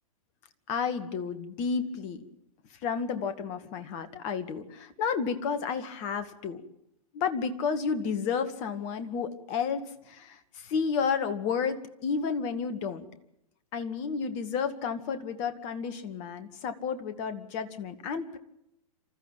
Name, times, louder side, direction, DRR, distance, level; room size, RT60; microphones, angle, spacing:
voice 1, 0.7-2.2 2.8-6.6 7.1-13.1 13.7-18.4, left 6 dB, 35° left, 10 dB, 2.1 m, -31 dB
27.0 x 14.5 x 9.1 m, 0.81 s
figure-of-eight pair, 110°, 20 cm